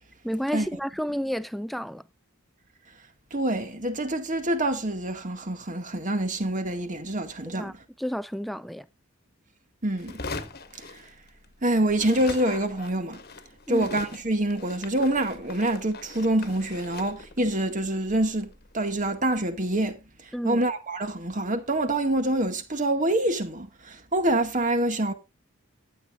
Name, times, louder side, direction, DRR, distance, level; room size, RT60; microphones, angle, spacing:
voice 1, 0.2-2.0 7.5-7.7 8.0-8.9 13.7-13.9 20.3-20.6, equal, ahead, 0.5 m, -31 dB
voice 2, 3.3-7.8 9.8-10.2 10.9-11.0 11.6-13.2 13.7-18.5 18.7-20.0 20.4-25.1, right 1 dB, 35° right, 2.0 m, -26 dB
sound 1, 10.0-11.6 11.9-19.1, left 3 dB, 45° left, 1.4 m, -41 dB
15.0 x 9.3 x 2.5 m
head